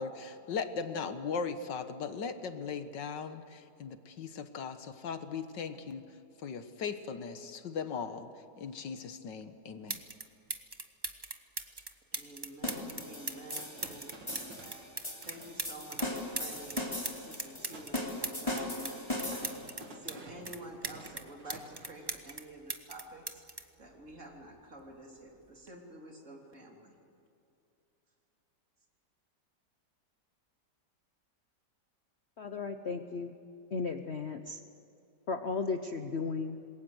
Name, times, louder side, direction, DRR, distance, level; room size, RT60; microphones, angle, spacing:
voice 1, 0.0-6.1 6.4-8.3 8.6-10.0, left 5 dB, 80° left, 9 dB, 1.9 m, -38 dB
sound 1, 9.4-9.5 9.9-10.2 10.5-16.1 16.4-20.2 20.5-22.4 22.7-24.5 25.5-25.7, right 2 dB, 15° right, 0.9 m, -39 dB
voice 2, 12.1-14.9 15.2-16.9 17.2-19.5 19.9-23.4 23.8-27.0, right 1 dB, 45° right, 0 dB, 3.7 m, -49 dB
sound 2, 12.6-19.7, left 2 dB, 15° left, 3.4 m, -39 dB
sound 3, 12.9-14.8 15.1-15.5 15.9-16.2 16.5-17.1 17.4-22.1, right 2 dB, 85° right, 2.9 m, -51 dB
voice 3, 32.4-33.3 33.7-34.6 35.3-36.6, left 4 dB, 45° left, 7 dB, 1.0 m, -35 dB
27.0 x 21.5 x 8.0 m, 2.6 s
omnidirectional pair, 1.9 m